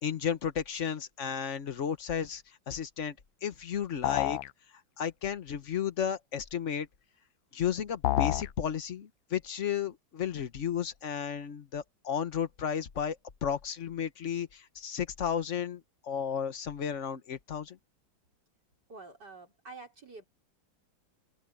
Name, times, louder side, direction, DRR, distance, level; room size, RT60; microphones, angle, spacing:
voice 1, 0.0-3.1 3.4-4.4 5.0-6.9 7.5-13.2 13.4-17.8, left 8 dB, 45° left, 1.2 m, -33 dB
sound 1, 4.0-4.5 8.0-8.5, left 16 dB, 80° left, 1.3 m, -28 dB
voice 2, 18.9-20.3, right 3 dB, 60° right, 5.5 m, -48 dB
omnidirectional pair, 2.1 m